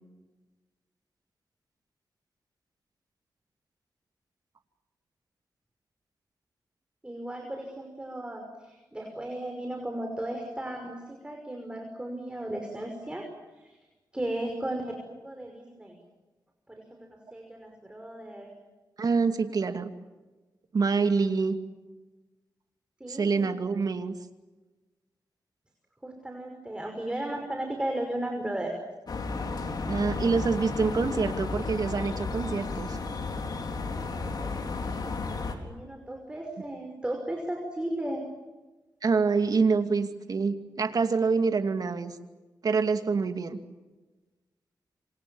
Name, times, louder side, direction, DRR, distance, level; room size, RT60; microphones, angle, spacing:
voice 1, 7.0-13.3 13.6-13.8 14.1-16.0 16.7-18.5 23.0-23.5 26.0-28.7 33.8-35.2 35.6-38.2, right 1 dB, 15° right, 2 dB, 5.6 m, -35 dB
voice 2, 19.0-19.9 20.7-21.6 23.1-24.1 29.9-33.0 39.0-42.1 42.6-43.6, right 4 dB, 55° right, 7 dB, 2.5 m, -26 dB
sound 1, 29.1-35.6, left 3 dB, 60° left, 4.0 m, -33 dB
27.5 x 26.5 x 7.2 m, 1.2 s
cardioid pair, 85°, 8 cm